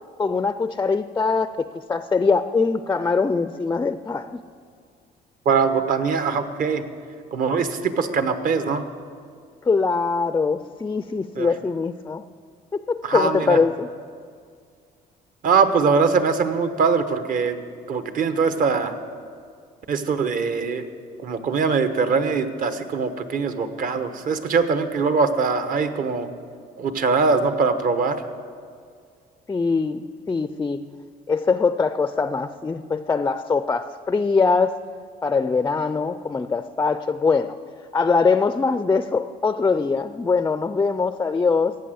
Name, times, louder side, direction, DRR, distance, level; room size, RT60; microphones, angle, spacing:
voice 1, 0.2-4.4 9.6-12.3 12.7-13.9 29.5-30.9 31.3-34.8 35.2-37.6 37.9-41.8, left 4 dB, 15° left, 12 dB, 0.4 m, -22 dB
voice 2, 5.4-6.8 7.3-8.8 11.4-11.5 13.0-13.6 15.4-17.6 17.9-18.9 19.9-20.9 21.2-26.3 26.8-28.2, right 5 dB, 55° right, 9 dB, 1.1 m, -22 dB
15.0 x 9.0 x 7.9 m, 2.1 s
cardioid pair, 110°, 17 cm